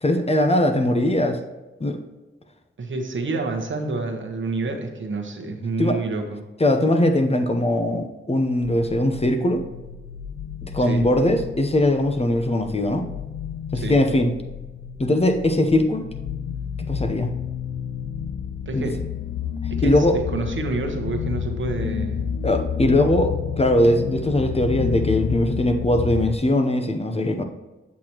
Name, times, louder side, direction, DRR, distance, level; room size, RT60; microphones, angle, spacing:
voice 1, 0.0-1.4 1.8-2.0 5.8-6.0 6.6-9.6 10.6-13.1 13.7-14.3 15.0-16.1 16.9-17.3 18.7-18.9 19.8-20.2 22.4-27.4, left 1 dB, 30° left, 5 dB, 0.8 m, -20 dB
voice 2, 2.8-6.4 10.8-11.0 13.7-13.9 18.7-18.9 19.7-22.3, right 3 dB, 65° right, 4 dB, 1.1 m, -28 dB
sound 1, 8.6-26.4, left 8 dB, 65° left, 0.5 m, -30 dB
8.3 x 6.0 x 3.0 m, 1.1 s
cardioid pair, 50°, 21 cm